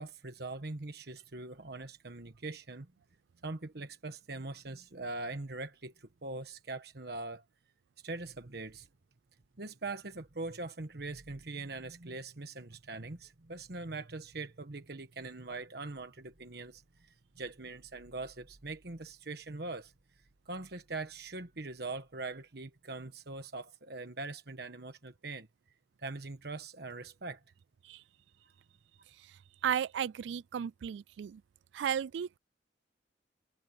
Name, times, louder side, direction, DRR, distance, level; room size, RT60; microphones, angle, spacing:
voice 1, 0.0-2.9 3.4-7.4 8.0-8.9 9.6-19.9 20.4-25.5 26.0-27.4, right 3 dB, 60° right, 1.3 m, -42 dB
voice 2, 29.6-31.4 31.7-32.4, right 8 dB, 85° right, 0.3 m, -34 dB
head